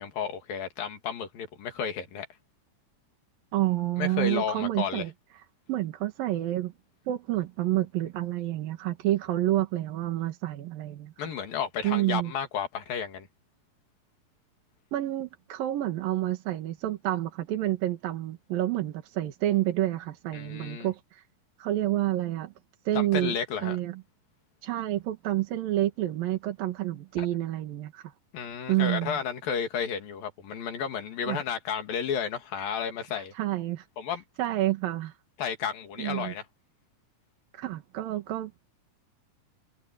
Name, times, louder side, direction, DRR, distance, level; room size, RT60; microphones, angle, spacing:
voice 1, 0.0-2.3 4.0-5.1 11.2-13.3 20.3-20.9 22.9-23.8 28.3-33.3 34.0-34.2 35.4-36.4, left 7 dB, 85° left, 4.2 m, -32 dB
voice 2, 3.5-5.1 5.7-6.7 7.1-11.1 11.8-12.3 14.9-21.2 21.6-22.5 22.9-23.4 23.6-24.0 24.6-28.1 28.7-29.2 31.3-31.4 33.1-33.8 34.4-35.1 36.0-36.3 37.5-38.7, right 14 dB, 85° right, 3.3 m, -29 dB
omnidirectional pair, 4.0 m